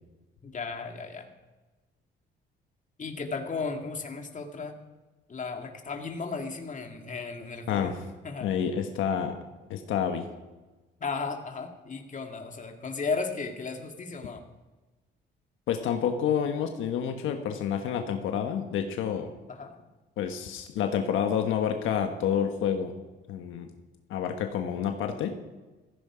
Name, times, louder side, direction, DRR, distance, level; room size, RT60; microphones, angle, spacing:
voice 1, 0.4-1.3 3.0-4.7 5.3-8.5 11.0-14.4 19.5-19.8, left 4 dB, 40° left, 4 dB, 2.4 m, -35 dB
voice 2, 8.4-9.4 9.7-10.3 15.7-19.3 20.2-22.9 23.3-23.7 24.1-25.3, left 8 dB, 85° left, 5 dB, 1.3 m, -28 dB
16.0 x 15.0 x 5.1 m, 1.2 s
cardioid pair, 90°, 20 cm